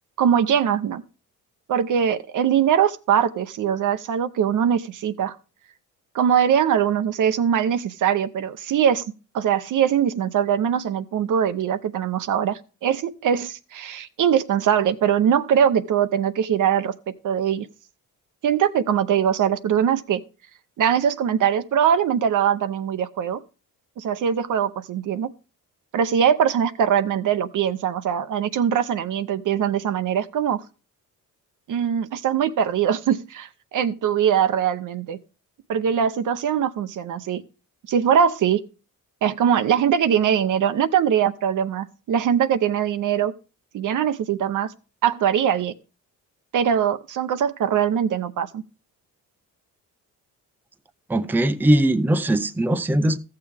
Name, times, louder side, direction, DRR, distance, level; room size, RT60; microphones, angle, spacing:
voice 1, 0.2-1.0 1.7-5.4 6.1-9.0 9.3-16.9 17.2-17.7 18.4-20.2 20.8-23.4 24.0-25.3 25.9-30.6 31.7-35.2 35.7-37.4 37.9-38.6 39.2-43.3 43.7-44.7 45.0-45.7 46.5-48.6, right 8 dB, 65° right, 0.7 m, -22 dB
voice 2, 51.1-53.2, right 1 dB, 5° right, 0.5 m, -20 dB
14.0 x 6.8 x 3.4 m
cardioid pair, 95°, 34 cm